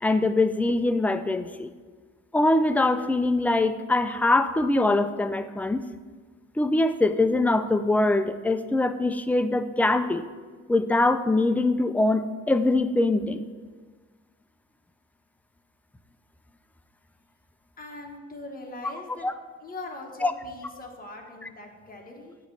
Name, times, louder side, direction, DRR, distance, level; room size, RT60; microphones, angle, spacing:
voice 1, 0.0-1.7 2.3-5.8 6.6-10.2 10.7-13.5 19.2-19.3 20.2-20.3, left 2 dB, 5° left, 10 dB, 0.3 m, -23 dB
voice 2, 17.8-19.3 19.6-22.4, left 2 dB, 30° left, 1 dB, 1.4 m, -41 dB
9.1 x 3.1 x 6.4 m, 1.4 s
cardioid pair, 90°, 30 cm